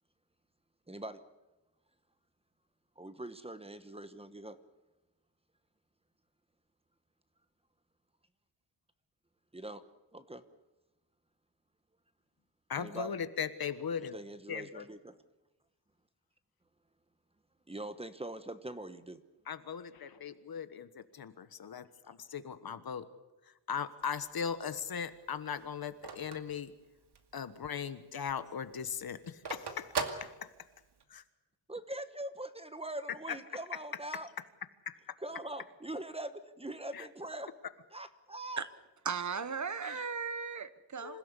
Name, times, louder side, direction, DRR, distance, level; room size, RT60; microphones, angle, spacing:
voice 1, 0.9-1.2 3.0-4.6 9.5-9.8 10.1-10.4 12.8-13.2 14.1-15.2 17.7-19.2 31.7-34.3 35.2-37.5 37.9-38.6, right 1 dB, 15° right, 1.1 m, -42 dB
voice 2, 12.7-14.1 14.5-14.8 19.5-23.1 23.7-26.7 27.3-30.5 31.1-31.2 34.9-35.0 36.9-37.0 39.8-40.1 41.0-41.2, left 7 dB, 50° left, 1.4 m, -39 dB
Telephone, 24.0-27.4 27.8-27.9 28.1-31.0, right 5 dB, 60° right, 2.4 m, -40 dB
voice 3, 39.0-41.2, right 6 dB, 40° right, 1.0 m, -36 dB
26.5 x 16.5 x 8.3 m
wide cardioid pair, 170°, 45 cm